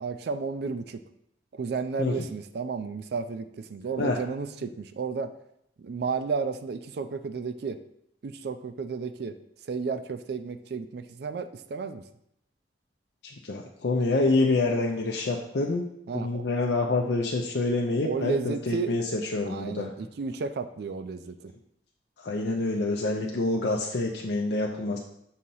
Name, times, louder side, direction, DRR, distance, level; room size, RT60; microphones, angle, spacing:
voice 1, 0.0-1.0 1.5-5.3 5.8-7.8 8.2-9.3 9.7-12.0 16.1-16.4 18.0-18.9 19.5-21.5, right 5 dB, 60° right, 10 dB, 0.4 m, -32 dB
voice 2, 13.4-15.9 16.1-19.9 22.2-25.0, left 2 dB, 65° left, 0 dB, 0.5 m, -27 dB
6.3 x 2.8 x 5.4 m, 0.77 s
head